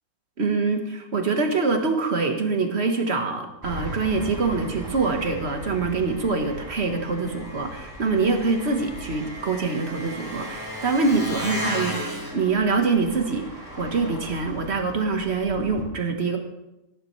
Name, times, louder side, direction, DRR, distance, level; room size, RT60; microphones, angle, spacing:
voice 1, 0.4-13.5 13.8-16.4, right 4 dB, 45° right, 5 dB, 1.6 m, -24 dB
Engine, 3.6-15.8, equal, 15° right, 4.8 m, -36 dB
16.0 x 11.0 x 3.2 m, 0.93 s
omnidirectional pair, 1.6 m